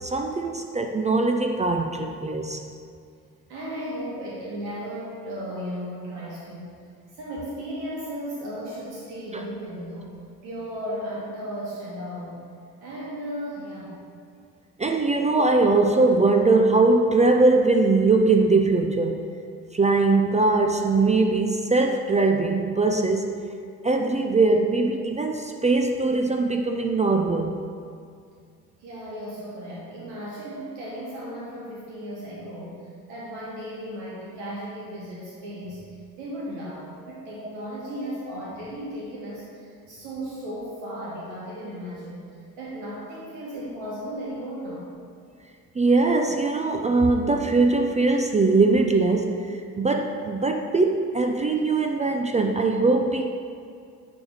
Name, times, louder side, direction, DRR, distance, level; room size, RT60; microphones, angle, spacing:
voice 1, 0.0-2.7 9.3-9.4 14.8-19.2 19.7-23.4 23.8-27.6 45.7-53.3, right 3 dB, 15° right, 4 dB, 0.4 m, -21 dB
voice 2, 3.5-6.8 7.1-10.2 10.4-12.4 12.8-14.0 28.8-44.9, equal, 65° right, -5 dB, 1.4 m, -35 dB
9.3 x 3.4 x 5.0 m, 2.2 s
figure-of-eight pair, 50°, 45 cm